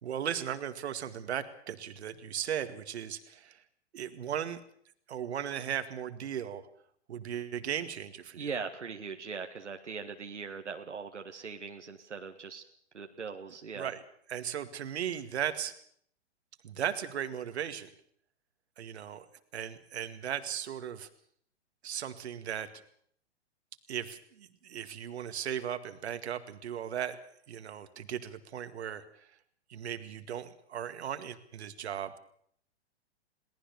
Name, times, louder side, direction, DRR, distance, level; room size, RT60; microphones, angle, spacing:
voice 1, 0.0-3.6 3.9-4.6 5.1-6.6 7.1-8.5 13.8-14.0 14.3-15.7 16.6-17.9 18.8-19.3 19.5-21.1 21.8-22.7 23.9-27.2 27.5-29.0 29.7-32.2, right 9 dB, 65° right, 10 dB, 2.2 m, -37 dB
voice 2, 8.4-12.6 12.9-13.9, right 5 dB, 90° right, 5 dB, 1.8 m, -40 dB
22.0 x 18.5 x 7.0 m, 0.63 s
hypercardioid pair, 120°, 34 cm